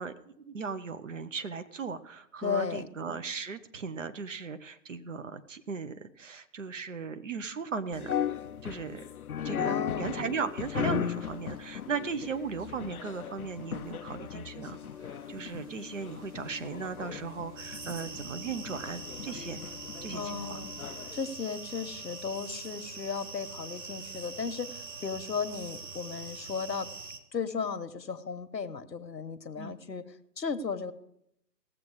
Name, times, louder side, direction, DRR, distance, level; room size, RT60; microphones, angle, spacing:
voice 1, 0.0-8.1 8.6-9.0 9.4-14.8 15.0-19.6 20.0-20.6 29.6-29.8, right 5 dB, 50° right, 10 dB, 0.9 m, -37 dB
voice 2, 2.4-2.9 9.6-10.1 20.1-20.7 21.1-26.9 27.3-30.1 30.4-30.9, left 5 dB, 85° left, 11 dB, 1.1 m, -35 dB
sound 1, 7.9-21.2, left 9 dB, 60° left, 0.5 m, -37 dB
sound 2, 10.5-27.1, right 3 dB, 15° right, 1.3 m, -58 dB
sound 3, 17.6-27.2, right 4 dB, 75° right, 1.5 m, -43 dB
18.0 x 7.5 x 4.8 m, 0.76 s
figure-of-eight pair, 145°, 50 cm